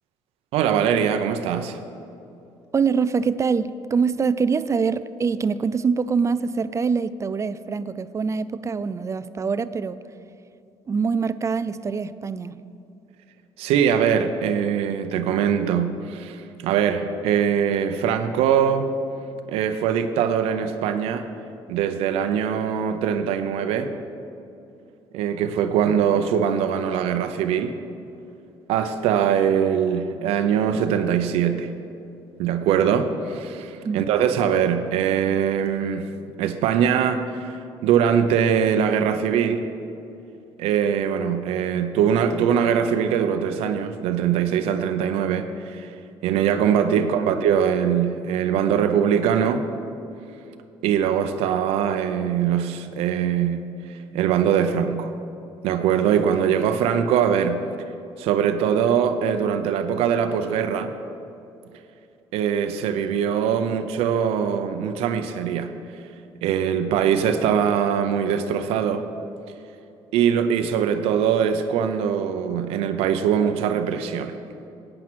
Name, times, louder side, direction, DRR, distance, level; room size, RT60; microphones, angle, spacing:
voice 1, 0.5-1.8 13.6-18.9 19.5-21.2 21.7-23.9 25.1-27.7 28.7-31.7 32.4-36.1 36.4-37.5 37.8-39.7 40.6-45.9 46.2-49.6 50.8-55.1 55.6-57.6 58.2-60.9 62.3-65.7 66.4-69.1 70.1-74.4, right 8 dB, 85° right, 8 dB, 0.7 m, -22 dB
voice 2, 2.7-10.0 10.9-12.6 33.8-34.1 47.0-47.3, right 5 dB, 30° right, 15 dB, 0.4 m, -24 dB
11.0 x 8.9 x 6.2 m, 2.6 s
cardioid pair, 90°, 10 cm